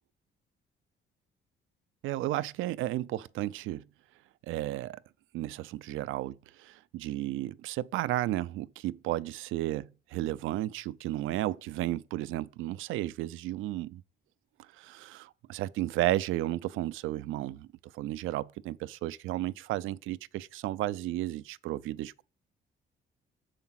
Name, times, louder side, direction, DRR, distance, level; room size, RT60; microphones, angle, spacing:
voice 1, 2.0-3.9 4.5-5.0 5.3-14.0 14.8-17.7 17.9-22.2, right 15 dB, 90° right, 0.4 m, -33 dB
7.1 x 4.9 x 5.8 m
cardioid pair, 90°, 20 cm